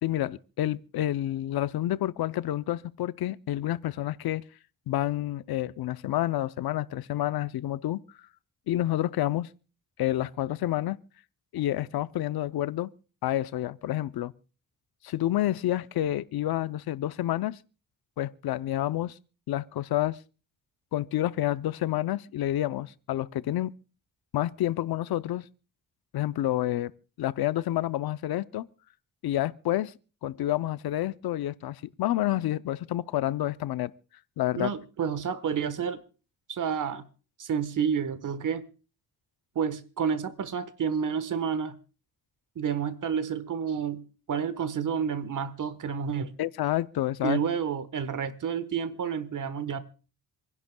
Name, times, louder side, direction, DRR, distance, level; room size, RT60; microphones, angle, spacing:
voice 1, 0.0-4.4 4.9-8.0 8.7-9.5 10.0-11.0 11.5-12.9 13.2-14.3 15.0-17.6 18.2-19.1 19.5-20.2 20.9-23.7 24.3-25.4 26.1-26.9 27.2-28.7 29.2-29.9 30.2-33.9 34.4-34.7 46.4-47.4, left 14 dB, 85° left, 0.6 m, -29 dB
voice 2, 34.5-36.0 36.5-37.1 37.4-38.7 39.5-41.8 42.5-46.3 47.2-49.8, right 7 dB, 60° right, 1.2 m, -30 dB
27.0 x 11.0 x 2.2 m
wide cardioid pair, 120°, 36 cm